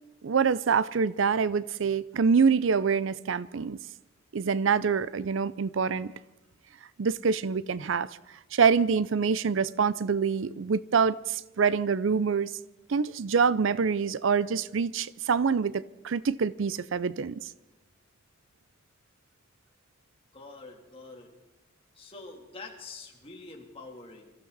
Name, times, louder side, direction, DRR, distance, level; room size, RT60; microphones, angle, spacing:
voice 1, 0.2-3.8 4.3-6.1 7.0-8.1 8.5-12.5 12.9-17.5, right 5 dB, 65° right, 0.5 m, -25 dB
voice 2, 20.3-21.3 21.9-24.3, left 3 dB, 25° left, 3.0 m, -45 dB
24.5 x 14.5 x 4.1 m
head